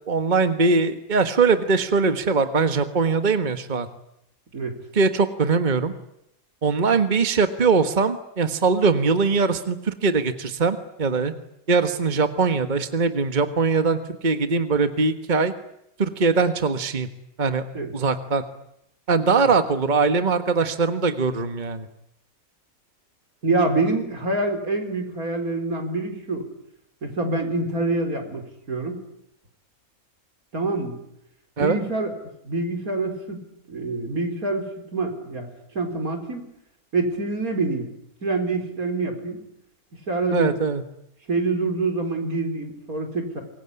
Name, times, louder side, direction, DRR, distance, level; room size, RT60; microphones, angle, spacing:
voice 1, 0.1-3.9 4.9-5.9 6.6-11.3 11.7-15.5 16.0-17.1 17.4-17.7 17.9-18.4 19.1-21.9 31.6-31.8 40.3-40.8, right 4 dB, 35° right, 9 dB, 1.6 m, -21 dB
voice 2, 23.4-26.5 27.0-29.0 30.5-31.0 31.6-32.1 32.4-35.5 35.7-36.5 36.9-37.9 38.2-39.4 40.1-40.5 41.3-43.4, right 3 dB, 85° right, 5 dB, 5.0 m, -26 dB
25.5 x 22.5 x 9.9 m, 0.78 s
omnidirectional pair, 1.5 m